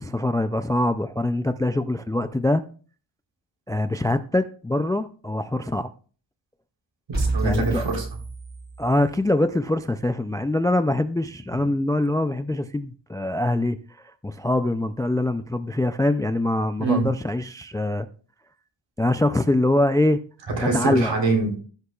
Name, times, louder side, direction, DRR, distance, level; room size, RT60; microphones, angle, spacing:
voice 1, 0.0-2.6 3.7-5.9 7.4-7.8 8.8-18.1 19.0-20.2 20.6-21.1, left 1 dB, 10° left, 0.3 m, -24 dB
sound 1, 7.1-9.2, right 3 dB, 20° right, 3.1 m, -29 dB
voice 2, 7.1-8.1 16.8-17.1 20.5-21.6, right 3 dB, 70° right, 3.8 m, -24 dB
16.0 x 6.6 x 2.3 m
wide cardioid pair, 105°, 45 cm